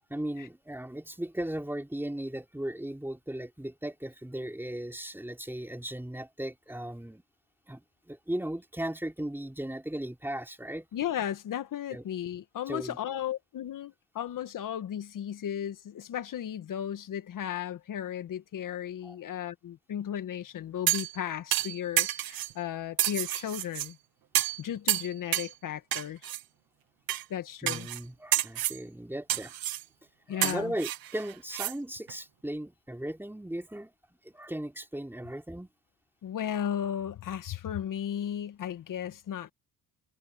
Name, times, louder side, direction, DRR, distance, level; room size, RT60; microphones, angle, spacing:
voice 1, 0.1-7.2 7.7-10.9 11.9-12.0 12.7-13.0 19.0-19.2 27.6-29.5 30.3-33.9 34.2-35.7, right 1 dB, 5° right, 3.2 m, -37 dB
voice 2, 10.9-24.0 24.6-26.3 27.3-27.9 30.3-30.7 36.2-39.5, left 10 dB, 60° left, 1.8 m, -35 dB
sound 1, 20.9-21.2 21.5-22.5 23.0-23.9 24.3-24.6 24.9-25.5 25.9-26.4 27.1-27.2 27.7-28.0 28.3-28.8 29.3-29.8 30.4-31.7 32.1-32.2, right 14 dB, 70° right, 1.5 m, -29 dB
supercardioid pair, 75°, 37 cm